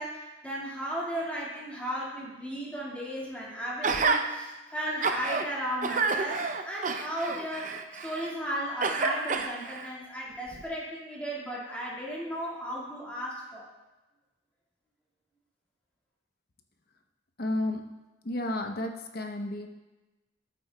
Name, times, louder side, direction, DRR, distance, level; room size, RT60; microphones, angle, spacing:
voice 1, 0.0-13.7, equal, 5° left, -6 dB, 1.9 m, -35 dB
Gasp, 3.8-4.2 4.8-5.4 5.8-8.3 8.8-9.9 10.5-10.6, right 4 dB, 40° right, 0.5 m, -29 dB
voice 2, 17.4-17.9 18.2-19.7, left 1 dB, 50° left, 4 dB, 0.8 m, -32 dB
13.0 x 8.2 x 2.2 m, 1.1 s
head